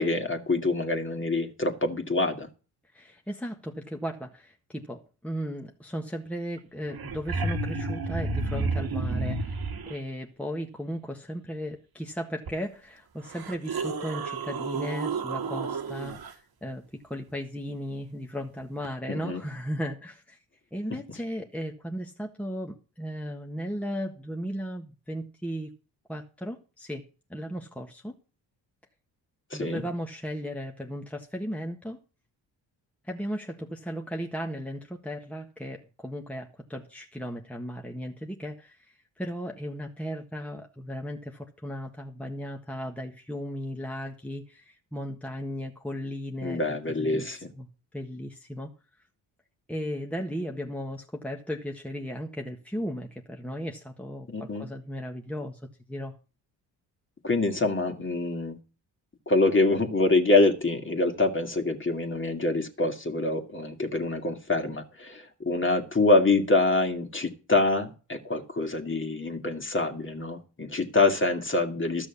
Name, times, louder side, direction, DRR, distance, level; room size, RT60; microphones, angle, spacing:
voice 1, 0.0-2.5 19.1-19.4 29.5-29.8 46.4-47.4 54.3-54.7 57.2-58.6 59.3-72.1, left 2 dB, 25° left, 2.3 m, -25 dB
voice 2, 2.9-20.4 20.7-25.7 26.1-27.0 27.3-28.1 29.5-32.0 33.0-47.7 47.9-48.7 49.7-55.6 55.9-56.1, equal, 5° left, 1.5 m, -36 dB
sound 1, 6.6-6.7 6.8-10.0 12.5-12.6 13.2-16.3 18.8-18.9, right 3 dB, 55° right, 1.8 m, -31 dB
12.5 x 6.3 x 7.1 m
supercardioid pair, 55°, 44 cm